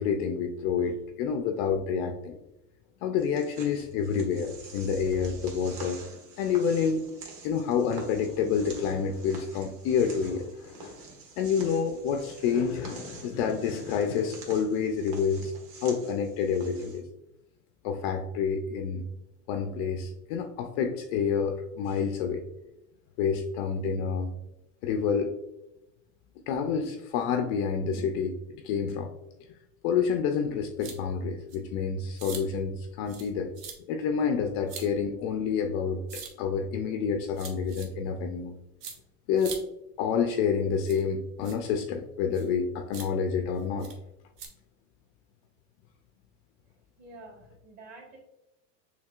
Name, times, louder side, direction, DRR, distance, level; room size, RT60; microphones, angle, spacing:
voice 1, 0.0-2.4 3.0-6.0 6.4-7.0 7.4-11.0 11.4-15.5 15.8-17.1 17.8-19.1 19.5-22.4 23.2-24.3 24.8-25.3 26.5-28.3 28.6-29.1 29.8-33.5 33.9-38.5 39.3-39.6 40.0-43.9, left 6 dB, 45° left, 6 dB, 0.4 m, -28 dB
sound 1, 3.2-17.0, right 4 dB, 85° right, 1.5 m, -47 dB
sound 2, 30.8-31.0 31.5-31.6 32.2-32.4 33.1-33.3 33.5-33.7 34.7-34.9 36.1-36.3 37.3-37.9 38.8-38.9 39.4-39.6 40.8-41.0 41.4-41.6 42.3-42.5 42.9-43.1 43.8-43.9 44.4-44.5, right 6 dB, 50° right, 1.0 m, -41 dB
voice 2, 47.0-48.2, right 2 dB, 35° right, 1 dB, 1.4 m, -48 dB
6.6 x 2.8 x 2.4 m, 0.89 s
supercardioid pair, 135°, 48 cm